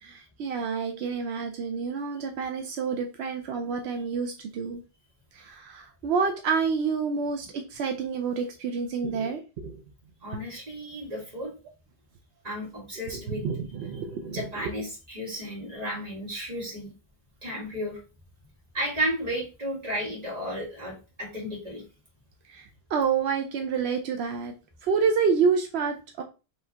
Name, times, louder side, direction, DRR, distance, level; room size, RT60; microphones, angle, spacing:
voice 1, 0.0-4.8 5.3-9.8 13.1-14.7 22.5-24.5 24.8-26.2, right 5 dB, 85° right, 5 dB, 0.8 m, -28 dB
voice 2, 10.2-11.5 12.4-13.4 14.3-16.9 17.4-18.0 18.7-21.8, equal, 40° right, -3 dB, 1.9 m, -33 dB
4.6 x 3.1 x 2.8 m, 0.32 s
omnidirectional pair, 1.1 m